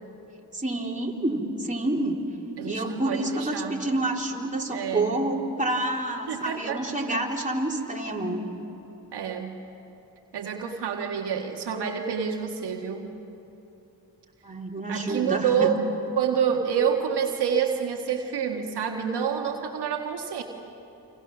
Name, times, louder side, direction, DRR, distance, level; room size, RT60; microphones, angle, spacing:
voice 1, 0.5-2.2 2.6-8.5 14.4-15.7, right 1 dB, 20° right, -1 dB, 3.8 m, -28 dB
voice 2, 2.6-3.8 4.7-5.2 6.3-7.2 9.1-9.6 10.3-13.1 14.9-15.8 16.2-20.4, right 7 dB, 80° right, 2 dB, 1.7 m, -28 dB
29.5 x 25.0 x 6.1 m, 2.9 s
supercardioid pair, 45°, 39 cm